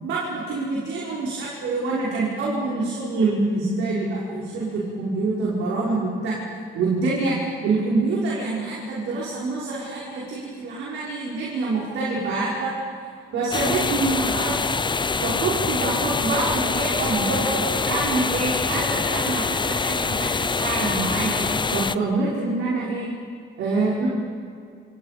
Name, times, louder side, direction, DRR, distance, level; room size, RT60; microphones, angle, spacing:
voice 1, 0.0-6.4 6.7-7.4 7.6-12.7 13.3-14.7 15.2-21.3 21.7-23.1 23.6-24.1, right 3 dB, 85° right, -6 dB, 5.6 m, -26 dB
sound 1, 13.5-21.9, left 4 dB, 25° left, 0.7 m, -25 dB
27.5 x 27.5 x 5.3 m, 2.2 s
cardioid pair, 90°, 20 cm